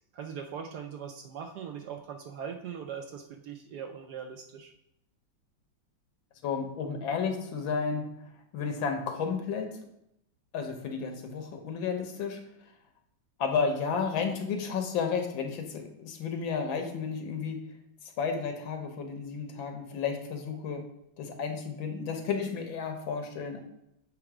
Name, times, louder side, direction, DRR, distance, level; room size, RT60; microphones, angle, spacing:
voice 1, 0.1-4.7, right 7 dB, 70° right, 4 dB, 1.0 m, -40 dB
voice 2, 6.4-8.1 8.5-9.7 10.5-12.4 13.4-17.6 18.2-20.8 21.2-23.6, left 5 dB, 80° left, 4 dB, 1.7 m, -32 dB
6.9 x 3.4 x 4.8 m, 0.80 s
omnidirectional pair, 2.1 m